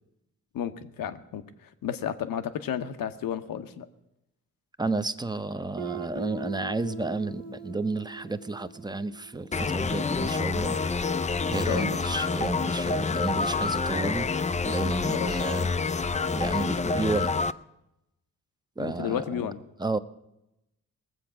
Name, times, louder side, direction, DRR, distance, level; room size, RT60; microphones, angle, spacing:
voice 1, 0.5-3.9 11.7-12.0 15.1-15.3 18.8-19.6, left 9 dB, 85° left, 10 dB, 0.9 m, -32 dB
voice 2, 4.8-10.8 11.5-14.3 14.6-16.0 16.3-17.4 18.8-19.5 19.8-20.0, right 3 dB, 10° right, 12 dB, 0.7 m, -31 dB
Guitar, 5.8-10.4, right 5 dB, 60° right, 1.2 m, -42 dB
sound 1, 9.5-17.5, left 4 dB, 20° left, 0.4 m, -27 dB
19.5 x 7.7 x 6.0 m, 0.89 s
cardioid pair, 60°, 33 cm